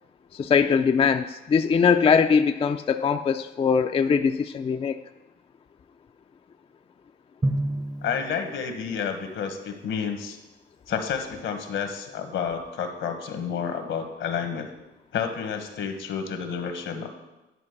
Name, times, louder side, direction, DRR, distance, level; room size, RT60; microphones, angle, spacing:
voice 1, 0.3-5.0, left 6 dB, 30° left, 8 dB, 0.4 m, -21 dB
Drum, 7.4-9.6, right 1 dB, 20° right, 0.7 m, -31 dB
voice 2, 8.0-10.4 10.9-14.7 15.1-17.1, left 7 dB, 75° left, 6 dB, 1.4 m, -30 dB
9.8 x 5.2 x 6.6 m, 1.0 s
cardioid pair, 90°, 20 cm